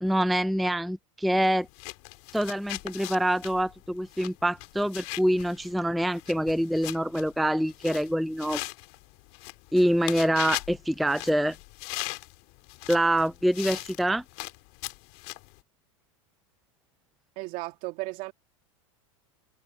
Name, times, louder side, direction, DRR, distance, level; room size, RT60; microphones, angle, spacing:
voice 1, 0.0-1.7 2.3-8.6 9.7-11.6 12.9-14.2, right 1 dB, ahead, 0.4 m, -25 dB
sound 1, 1.6-15.6, left 29 dB, 55° left, 2.5 m, -40 dB
voice 2, 17.4-18.3, right 23 dB, 50° right, 2.1 m, -35 dB
hypercardioid pair, 110°, 17 cm